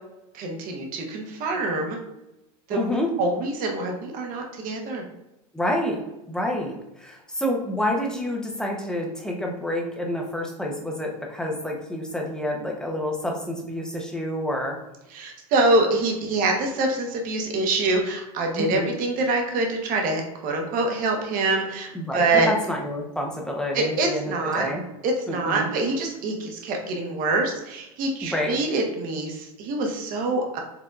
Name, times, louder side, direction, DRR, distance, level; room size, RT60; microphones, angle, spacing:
voice 1, 0.3-2.0 2.7-2.9 3.2-5.0 15.1-22.5 23.7-24.7 25.0-30.6, right 2 dB, 45° right, 2 dB, 1.1 m, -25 dB
voice 2, 2.7-3.1 5.5-6.0 6.3-14.8 18.6-18.9 21.9-24.8 25.3-25.7 28.2-28.6, left 1 dB, 5° left, 0 dB, 0.8 m, -28 dB
4.8 x 3.6 x 2.4 m, 0.93 s
hypercardioid pair, 105°, 19 cm